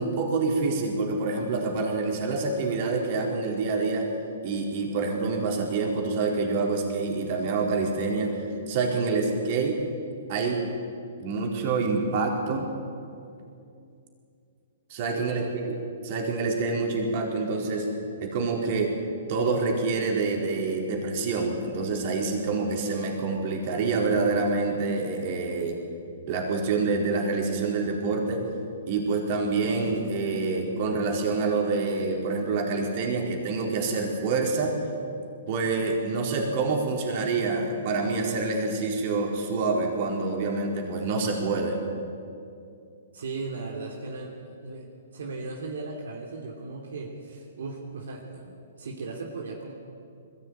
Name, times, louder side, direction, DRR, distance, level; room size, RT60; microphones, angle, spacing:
voice 1, 0.0-4.1 4.4-9.8 10.3-10.6 11.2-12.7 14.9-15.8 16.0-17.9 18.2-18.9 19.3-25.8 26.3-28.4 28.9-34.8 35.5-41.8, right 3 dB, 45° right, 1 dB, 4.5 m, -27 dB
voice 2, 15.1-15.8 43.1-49.7, right 3 dB, 75° right, 0 dB, 3.0 m, -37 dB
21.0 x 15.5 x 9.1 m, 2.5 s
hypercardioid pair, 140°, 0 cm